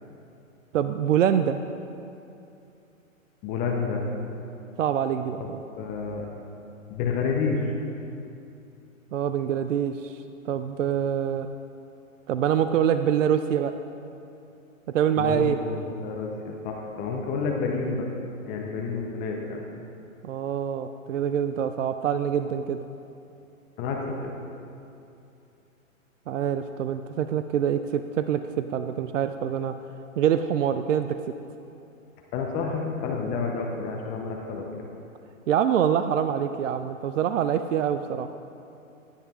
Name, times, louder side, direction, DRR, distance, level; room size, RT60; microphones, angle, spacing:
voice 1, 0.7-1.6 4.8-5.6 9.1-10.2 10.5-11.5 12.3-13.8 14.9-15.6 20.2-22.8 26.3-29.7 30.2-31.2 35.5-38.3, right 9 dB, 65° right, 10 dB, 0.5 m, -25 dB
voice 2, 3.4-4.1 5.4-5.5 5.8-6.3 6.9-7.7 15.2-18.1 18.5-19.6 23.8-24.3 32.3-34.7, left 4 dB, 20° left, 0 dB, 0.7 m, -29 dB
15.5 x 9.9 x 2.4 m, 2.7 s
figure-of-eight pair, 120°, 42 cm